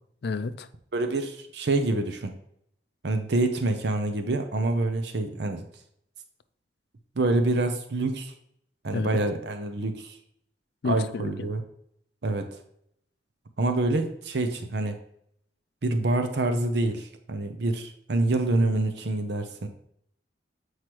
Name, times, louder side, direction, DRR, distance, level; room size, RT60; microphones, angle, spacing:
voice 1, 0.2-0.7 8.9-9.2 10.8-11.3, left 4 dB, 60° left, 12 dB, 0.4 m, -30 dB
voice 2, 0.9-2.4 3.0-5.6 7.2-8.3 8.8-10.2 10.8-11.6 12.2-12.6 13.6-15.0 15.8-19.7, right 2 dB, 60° right, 7 dB, 0.6 m, -26 dB
7.8 x 4.8 x 2.9 m, 0.72 s
head